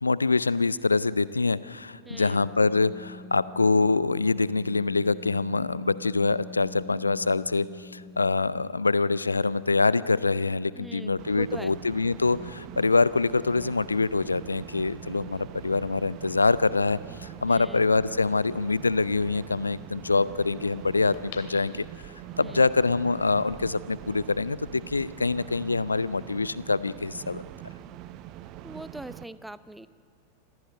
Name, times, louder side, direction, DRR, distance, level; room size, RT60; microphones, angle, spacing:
voice 1, 0.0-21.8 22.4-27.4, left 3 dB, 80° left, 19 dB, 0.5 m, -25 dB
voice 2, 2.0-2.5 10.7-11.8 17.5-17.8 22.4-22.7 28.6-29.9, right 1 dB, 5° right, 15 dB, 0.7 m, -42 dB
Piano, 2.0-17.4, left 4 dB, 80° right, 7.8 m, -48 dB
sound 1, 11.2-29.2, right 13 dB, 40° right, 0.8 m, -43 dB
sound 2, 21.1-22.5 23.0-23.1, left 8 dB, 50° left, 2.5 m, -46 dB
26.5 x 15.5 x 9.4 m, 2.2 s
figure-of-eight pair, 90°, 0 cm